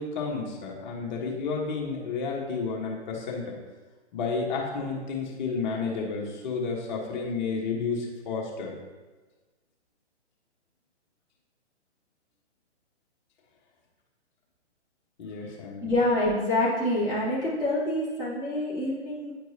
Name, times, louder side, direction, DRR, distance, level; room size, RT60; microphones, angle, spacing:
voice 1, 0.0-3.5 4.1-8.8 15.2-15.9, left 4 dB, 40° left, -2 dB, 1.4 m, -31 dB
voice 2, 15.8-19.3, left 1 dB, 10° right, -9 dB, 1.7 m, -26 dB
9.7 x 4.5 x 2.8 m, 1.3 s
hypercardioid pair, 140°, 35 cm